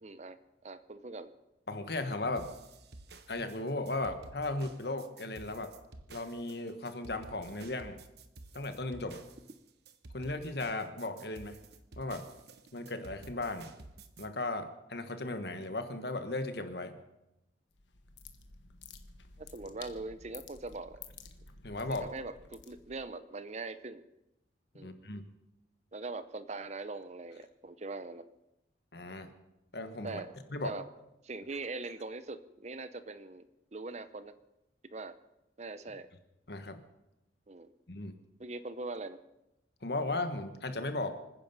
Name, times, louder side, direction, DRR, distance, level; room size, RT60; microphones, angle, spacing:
voice 1, 0.0-1.3 19.4-21.0 22.0-24.0 24.7-24.9 25.9-28.2 30.0-30.3 30.6-30.8 31.2-33.4 33.7-34.3 34.8-35.2 35.6-36.1 37.5-37.7 38.4-39.2, right 3 dB, 40° right, 13 dB, 0.7 m, -42 dB
voice 2, 1.7-2.5 3.3-5.7 6.1-8.0 8.5-9.2 10.1-11.6 12.0-12.2 12.7-13.7 14.2-16.9 21.6-22.1 24.8-25.2 28.9-29.3 29.7-30.2 30.5-30.7 36.5-36.8 37.9-38.2 39.8-41.2, left 2 dB, 60° left, 8 dB, 1.4 m, -36 dB
sound 1, 2.4-14.3, right 2 dB, 60° right, 1.1 m, -52 dB
sound 2, 17.7-23.1, left 5 dB, 85° left, 1.3 m, -52 dB
25.5 x 10.0 x 5.5 m, 0.91 s
head